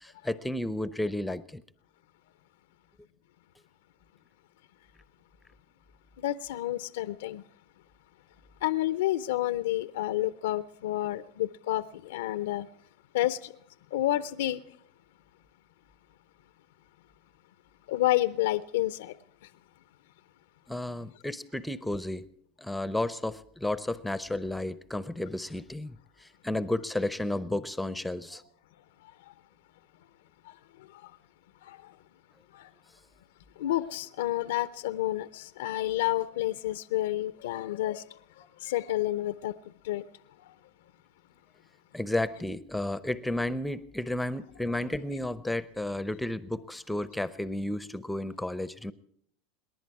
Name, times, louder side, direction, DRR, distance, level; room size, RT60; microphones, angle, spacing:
voice 1, 0.0-1.6 20.7-22.3 22.6-26.0 26.4-28.4 41.9-48.9, left 1 dB, 5° left, 0.7 m, -32 dB
voice 2, 6.2-7.4 8.6-12.7 13.1-13.5 13.9-14.6 17.9-19.1 28.3-28.4 31.6-31.8 32.5-32.7 33.6-38.0 38.6-39.5 39.8-40.0, left 14 dB, 75° left, 0.6 m, -29 dB
27.5 x 11.0 x 4.8 m
hypercardioid pair, 90°, 0 cm